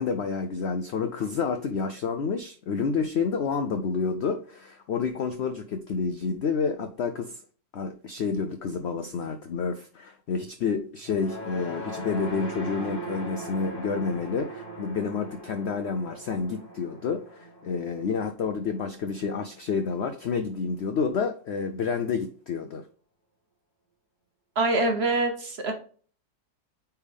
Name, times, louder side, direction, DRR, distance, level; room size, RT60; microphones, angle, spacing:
voice 1, 0.0-7.4 7.7-22.8, left 5 dB, 70° left, 0.6 m, -29 dB
sound 1, 11.0-19.4, right 1 dB, 50° left, 2.8 m, -40 dB
voice 2, 24.6-25.7, right 2 dB, 45° right, 1.1 m, -24 dB
8.9 x 3.5 x 3.4 m
omnidirectional pair, 1.8 m